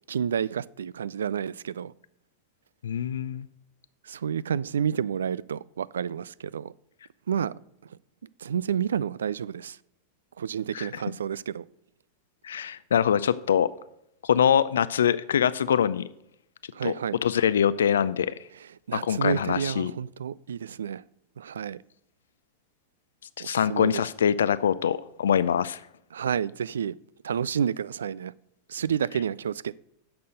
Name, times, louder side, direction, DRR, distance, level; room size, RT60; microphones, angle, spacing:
voice 1, 0.1-1.9 4.1-6.7 7.3-7.5 8.4-9.8 10.4-11.6 16.7-17.2 18.9-21.0 21.4-21.8 23.4-24.0 26.1-26.9 27.2-28.3 28.7-29.8, right 8 dB, 65° right, 0.3 m, -30 dB
voice 2, 2.8-3.5 10.7-11.0 12.4-13.7 14.2-16.1 16.8-16.9 17.2-18.3 19.0-19.9 23.4-25.8, left 8 dB, 65° left, 0.4 m, -24 dB
10.0 x 6.9 x 6.6 m
figure-of-eight pair, 90°, 0 cm